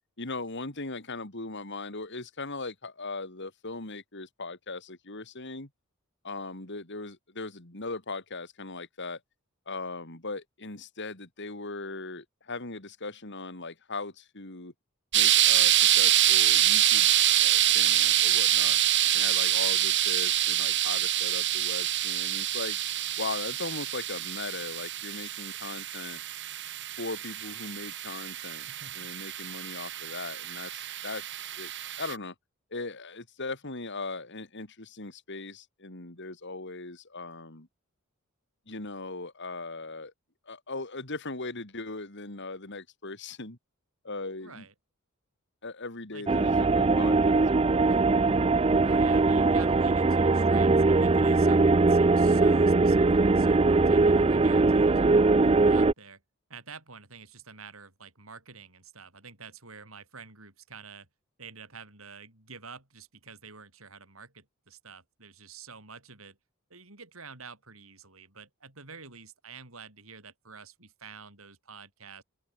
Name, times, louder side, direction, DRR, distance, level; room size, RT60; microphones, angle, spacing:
voice 1, 0.2-5.7 6.2-9.2 9.7-14.7 15.1-18.8 19.1-22.8 23.2-26.2 27.0-28.7 28.9-31.3 31.6-31.7 32.0-32.3 32.7-37.7 38.7-40.1 40.5-43.6 44.0-44.6 45.6-47.5 47.8-48.3, left 3 dB, 55° left, 3.3 m, -39 dB
sound 1, 15.1-32.1, right 12 dB, 55° right, 2.3 m, -26 dB
voice 2, 28.6-29.1 44.4-44.7 46.1-46.5 48.8-56.2 56.5-61.1 61.4-66.4 66.7-72.2, right 5 dB, 75° right, 6.3 m, -48 dB
sound 2, 46.3-55.9, right 3 dB, 25° right, 0.5 m, -21 dB
open air
head